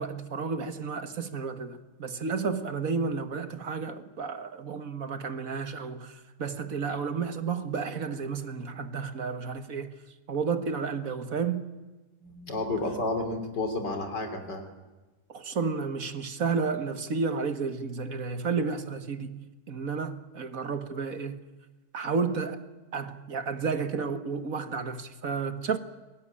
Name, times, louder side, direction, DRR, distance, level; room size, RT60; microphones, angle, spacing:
voice 1, 0.0-10.0 10.3-11.7 15.3-21.4 21.9-22.6 22.9-25.8, right 5 dB, 55° right, 1.8 m, -32 dB
voice 2, 12.2-14.6, left 2 dB, 85° left, 3.8 m, -31 dB
22.0 x 19.5 x 10.0 m
omnidirectional pair, 1.8 m